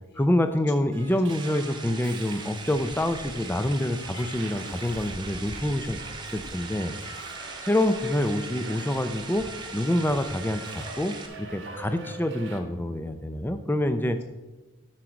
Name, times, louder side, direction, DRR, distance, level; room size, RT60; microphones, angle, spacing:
voice 1, 0.2-6.0 6.3-6.9 7.6-9.5 9.7-14.2, left 1 dB, 10° left, 9 dB, 0.5 m, -26 dB
Subway metro underground, 0.9-12.6, right 3 dB, 60° right, 1.3 m, -43 dB
sound 1, 1.3-11.3, right 4 dB, 20° right, 1.0 m, -41 dB
sound 2, 3.7-9.2, left 5 dB, 80° left, 3.6 m, -53 dB
voice 2, 4.6-5.0 6.4-6.5 7.0-7.6, left 1 dB, 50° left, 2 dB, 1.7 m, -52 dB
11.5 x 4.6 x 6.2 m, 1.1 s
head